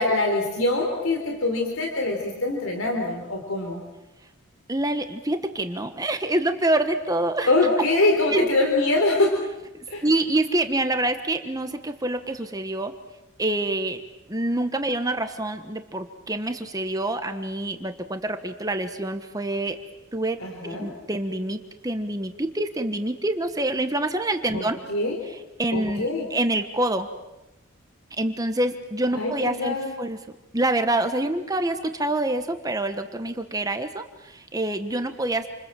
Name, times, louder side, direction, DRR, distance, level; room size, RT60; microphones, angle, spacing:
voice 1, 0.0-3.8 7.5-9.3 9.9-10.0 20.4-20.9 24.5-25.2 25.7-26.3 29.1-29.9, left 2 dB, 80° left, 2 dB, 3.9 m, -24 dB
voice 2, 4.7-7.5 8.3-8.5 10.0-12.9 13.4-14.0 14.3-19.8 20.1-24.8 25.6-27.1 28.2-30.2 30.5-35.5, right 1 dB, 15° right, 7 dB, 1.3 m, -26 dB
29.0 x 27.0 x 7.6 m, 0.99 s
head